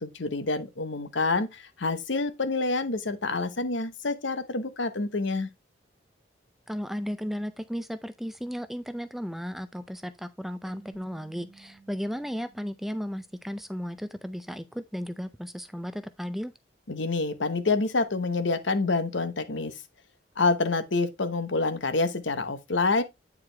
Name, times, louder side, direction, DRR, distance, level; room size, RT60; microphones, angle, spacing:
voice 1, 0.0-5.5 16.9-19.8 20.4-23.0, left 3 dB, 75° left, 1.0 m, -27 dB
voice 2, 6.7-16.5, equal, ahead, 0.4 m, -35 dB
sound 1, 10.6-13.8, right 4 dB, 35° left, 2.9 m, -55 dB
9.0 x 4.8 x 3.3 m
head